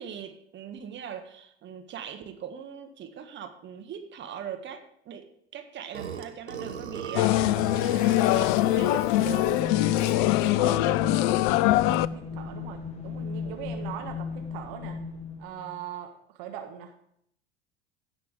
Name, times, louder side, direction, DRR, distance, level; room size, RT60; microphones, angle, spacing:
voice 1, 0.0-10.4, right 8 dB, 35° right, 6 dB, 1.6 m, -41 dB
Burping eructation, 5.9-10.7, right 7 dB, 85° right, 1.3 m, -39 dB
sound 1, 7.1-12.1, left 16 dB, 50° left, 0.5 m, -23 dB
sound 2, 8.1-15.7, left 5 dB, 20° left, 1.9 m, -36 dB
voice 2, 10.4-15.0 15.4-16.1 16.4-16.9, right 10 dB, 55° right, 5 dB, 1.5 m, -40 dB
16.5 x 6.0 x 3.5 m, 0.72 s
figure-of-eight pair, 75°, 32 cm